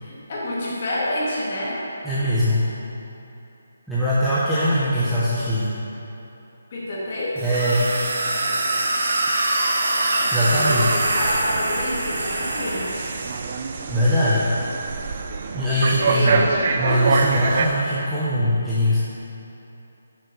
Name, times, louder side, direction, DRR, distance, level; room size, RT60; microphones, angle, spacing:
voice 1, 0.0-1.8 4.6-4.7 6.7-7.4 10.3-12.9 16.1-16.7, left 1 dB, 35° left, -6 dB, 2.1 m, -28 dB
voice 2, 2.0-2.7 3.9-5.7 7.4-8.0 10.3-11.0 13.9-14.5 15.5-16.4 16.8-19.0, equal, ahead, -14 dB, 0.8 m, -21 dB
sound 1, 7.4-13.3, right 2 dB, 50° right, 1.4 m, -24 dB
sound 2, 10.6-17.7, right 5 dB, 30° right, 0.4 m, -26 dB
9.4 x 6.3 x 5.5 m, 3.0 s
hypercardioid pair, 175°, 0 cm